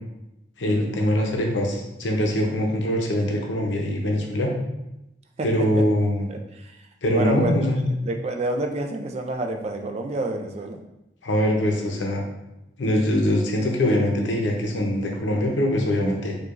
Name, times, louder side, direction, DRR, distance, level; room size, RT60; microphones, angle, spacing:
voice 1, 0.6-4.5 5.4-6.3 7.0-7.8 11.2-12.2 12.8-16.4, left 1 dB, 85° left, 1 dB, 0.7 m, -23 dB
voice 2, 5.4-5.8 6.3-6.7 7.1-7.6 8.0-10.8, right 2 dB, 35° right, 4 dB, 0.3 m, -28 dB
4.6 x 2.3 x 2.5 m, 0.90 s
head